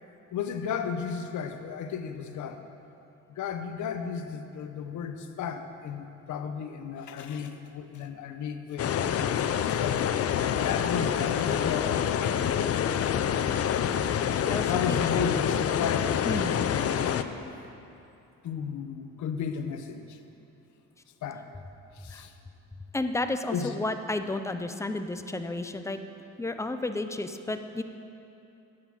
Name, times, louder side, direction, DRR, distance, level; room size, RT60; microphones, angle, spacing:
voice 1, 0.3-2.6 3.4-9.1 9.6-10.1 10.5-12.4 14.6-17.6 18.4-20.2 21.2-21.4 22.0-22.3 23.5-23.7, left 7 dB, 75° left, 8 dB, 0.9 m, -34 dB
sound 1, 8.8-17.2, left 9 dB, 50° left, 0.6 m, -27 dB
voice 2, 14.5-15.4 16.2-16.7 22.1-22.2 22.9-26.0 26.4-27.8, left 2 dB, 10° left, 8 dB, 0.6 m, -32 dB
10.5 x 7.9 x 7.2 m, 2.8 s
cardioid pair, 90°, 30 cm